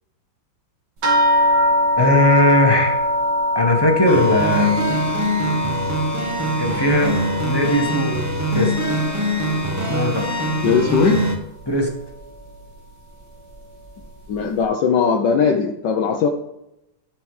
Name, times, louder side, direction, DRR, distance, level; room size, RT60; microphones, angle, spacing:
sound 1, 1.0-9.9 10.2-11.0 11.8-11.9 12.3-12.5, left 1 dB, 60° right, 2.6 m, -23 dB
voice 1, 2.0-3.0 3.5-4.8 6.6-7.1 7.4-8.2 8.5-8.7 9.9-10.2 11.7-11.9, left 1 dB, 15° left, 1 dB, 1.1 m, -18 dB
sound 2, 4.1-11.4, equal, 15° right, 0.7 m, -23 dB
voice 2, 10.6-11.2 14.3-16.3, left 6 dB, 70° left, 3 dB, 1.3 m, -19 dB
12.5 x 4.7 x 4.9 m, 0.86 s
omnidirectional pair, 2.1 m